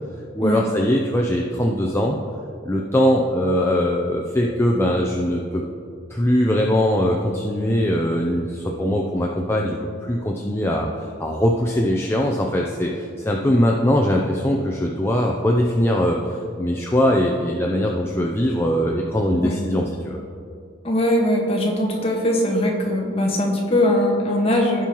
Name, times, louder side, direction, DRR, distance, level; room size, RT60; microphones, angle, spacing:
voice 1, 0.3-2.2 2.6-5.6 6.1-20.2, equal, 10° left, 0 dB, 0.5 m, -21 dB
voice 2, 20.8-24.9, left 1 dB, 30° left, -2 dB, 1.4 m, -20 dB
16.0 x 5.4 x 3.0 m, 2.4 s
head